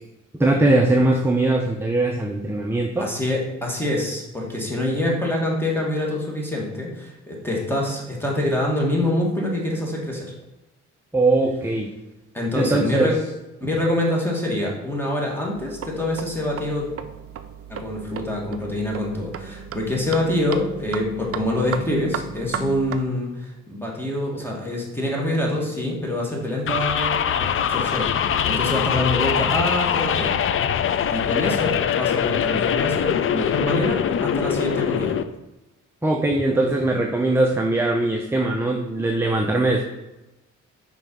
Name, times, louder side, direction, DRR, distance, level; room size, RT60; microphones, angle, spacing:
voice 1, 0.4-3.1 11.1-11.9 12.6-13.1 36.0-39.8, right 2 dB, 10° right, 2 dB, 0.7 m, -21 dB
voice 2, 3.0-10.3 12.3-13.2 13.6-16.9 17.7-30.4 31.1-35.1, left 1 dB, 5° left, -2 dB, 2.2 m, -25 dB
sound 1, 15.5-23.0, right 7 dB, 50° right, 0.6 m, -35 dB
sound 2, 26.7-35.2, left 8 dB, 45° left, 0.5 m, -23 dB
5.9 x 4.7 x 5.5 m, 0.97 s
cardioid pair, 90°, 30 cm